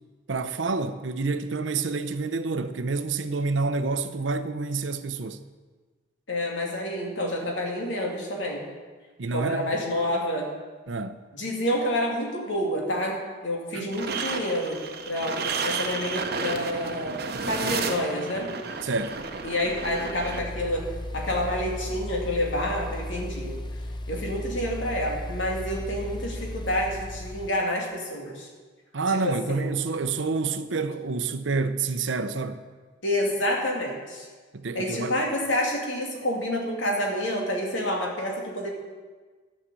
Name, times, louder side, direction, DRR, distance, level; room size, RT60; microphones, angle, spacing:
voice 1, 0.3-5.4 9.2-9.7 10.9-11.2 13.7-13.9 18.8-19.2 28.9-32.6 34.5-35.1, right 4 dB, 85° right, 0.7 m, -28 dB
voice 2, 6.3-8.6 9.3-10.5 11.3-13.2 13.4-17.2 17.5-18.5 19.4-20.9 21.1-23.6 24.1-28.5 29.2-29.7 33.0-34.3 34.7-38.7, left 1 dB, 85° left, 2.4 m, -28 dB
sound 1, 13.9-20.4, right 5 dB, 55° right, 0.9 m, -32 dB
sound 2, 18.3-27.5, left 1 dB, 25° left, 0.5 m, -36 dB
12.5 x 6.5 x 6.8 m
head